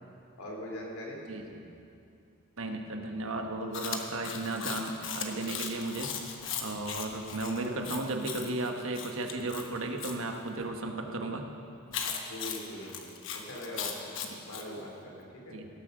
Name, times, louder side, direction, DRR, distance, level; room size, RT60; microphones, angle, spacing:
voice 1, 0.4-1.2 4.4-4.7 7.5-7.9 9.3-9.4 12.3-14.1 14.4-15.6, left 1 dB, 90° left, -1 dB, 2.8 m, -42 dB
voice 2, 1.3-1.7 2.6-6.1 6.6-11.4 14.3-14.4 15.5-15.7, right 2 dB, 75° right, 4 dB, 1.2 m, -35 dB
Chewing mastication, 3.7-10.2 11.9-14.7, left 7 dB, 60° left, 1.1 m, -38 dB
17.5 x 7.7 x 6.4 m, 2.6 s
head